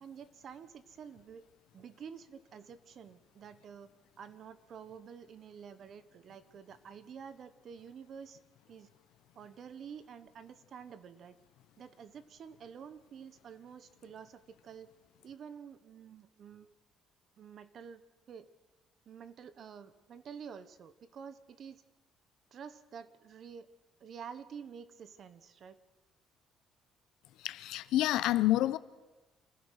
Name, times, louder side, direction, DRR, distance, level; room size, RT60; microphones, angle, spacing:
voice 1, 0.0-1.4 1.7-3.9 4.2-8.4 8.7-8.9 9.3-11.3 11.8-14.9 15.2-16.7 17.4-18.0 18.3-18.5 19.1-21.8 22.5-23.7 24.0-25.8, right 7 dB, 45° right, 1.2 m, -49 dB
voice 2, 27.4-28.8, left 15 dB, 80° left, 0.8 m, -28 dB
27.0 x 16.0 x 6.5 m
cardioid pair, 160°, 0 cm